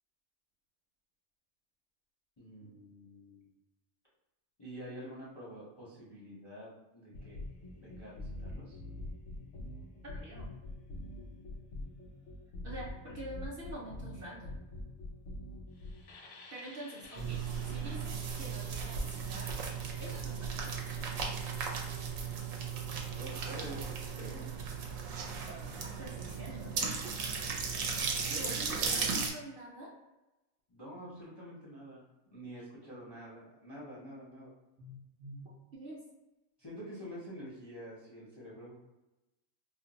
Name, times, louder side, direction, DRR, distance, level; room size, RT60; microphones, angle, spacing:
voice 1, 2.4-3.5 4.6-7.4 7.8-8.8 22.9-25.0 25.5-25.7 28.2-29.2 30.7-32.0 32.3-34.5 36.6-38.8, equal, 30° left, -7 dB, 0.5 m, -47 dB
sound 1, 7.1-23.9, left 1 dB, 65° left, 0.7 m, -47 dB
voice 2, 10.0-10.5 12.6-14.6 16.5-19.5 20.0-20.8 25.8-26.8 28.3-30.0 34.8-36.0, right 1 dB, 55° right, -4 dB, 0.7 m, -46 dB
sound 2, 17.2-29.3, right 5 dB, 85° right, 1.0 m, -36 dB
2.5 x 2.1 x 3.9 m, 1.0 s
omnidirectional pair, 1.4 m